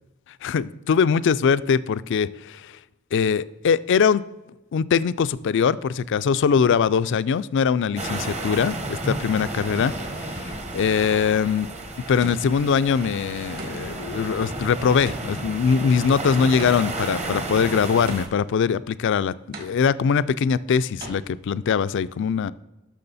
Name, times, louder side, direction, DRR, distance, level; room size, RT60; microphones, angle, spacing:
voice 1, 0.4-2.6 3.1-4.2 4.7-11.7 12.1-22.5, left 6 dB, 60° left, 16 dB, 0.4 m, -22 dB
sound 1, 8.0-18.3, right 2 dB, 35° right, 1.1 m, -32 dB
sound 2, 12.2-12.8 13.6-14.1 15.1-17.1 18.1-18.7 19.5-20.1 21.0-21.1, right 1 dB, 50° right, 2.2 m, -40 dB
12.0 x 6.2 x 4.1 m, 1.0 s
head